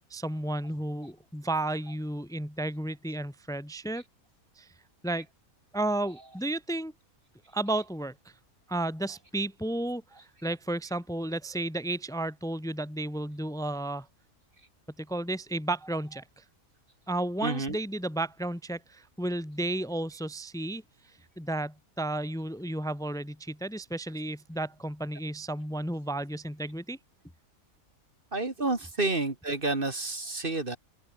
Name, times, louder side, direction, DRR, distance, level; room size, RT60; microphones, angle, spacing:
voice 1, 0.1-4.0 4.6-4.7 5.0-5.3 5.7-6.9 7.5-8.1 8.7-10.0 10.4-14.1 15.0-16.4 17.1-20.8 21.4-27.0, right 1 dB, ahead, 1.7 m, -32 dB
voice 2, 17.4-17.8 28.3-30.8, right 2 dB, 35° right, 2.4 m, -29 dB
open air
omnidirectional pair, 1.6 m